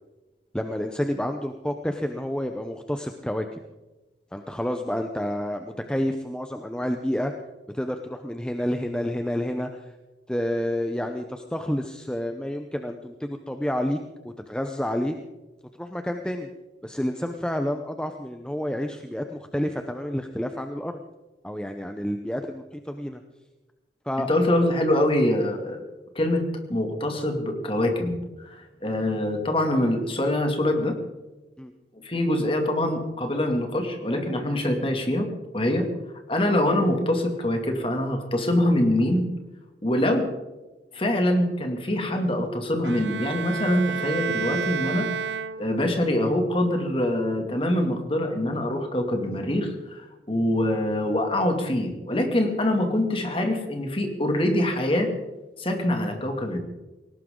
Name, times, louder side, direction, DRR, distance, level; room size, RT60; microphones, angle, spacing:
voice 1, 0.5-3.4 4.3-7.3 7.7-9.9 10.3-14.0 14.2-15.1 15.8-16.5 16.8-21.0 21.4-23.2 24.0-24.3 31.6-31.7, equal, 5° left, 5 dB, 0.8 m, -29 dB
voice 2, 24.2-25.8 26.1-26.4 26.7-28.2 28.4-31.0 32.0-35.3 35.5-35.9 36.3-39.3 39.8-40.3 40.9-55.1 55.6-56.6, left 1 dB, 30° left, 4 dB, 2.5 m, -24 dB
Bowed string instrument, 42.8-46.0, right 6 dB, 90° right, 0.8 m, -31 dB
19.5 x 18.5 x 3.9 m, 1.1 s
head